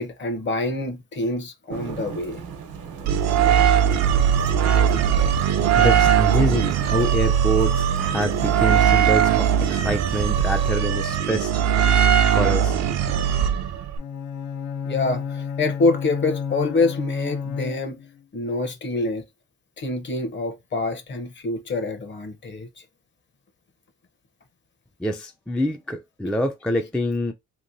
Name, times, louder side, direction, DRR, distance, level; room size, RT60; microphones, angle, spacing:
voice 1, 0.0-2.4 14.8-18.0 18.3-19.2 19.8-22.8, left 3 dB, 40° left, 0.8 m, -26 dB
Thunder / Rain, 1.7-10.7, right 6 dB, 80° right, 0.9 m, -37 dB
sound 1, 3.1-14.0, right 8 dB, 60° right, 0.5 m, -20 dB
voice 2, 5.7-12.0 12.3-12.8 25.0-27.3, equal, 5° left, 0.3 m, -26 dB
Bowed string instrument, 14.0-18.2, left 6 dB, 75° left, 0.4 m, -31 dB
2.9 x 2.6 x 2.6 m
cardioid pair, 90°, 30 cm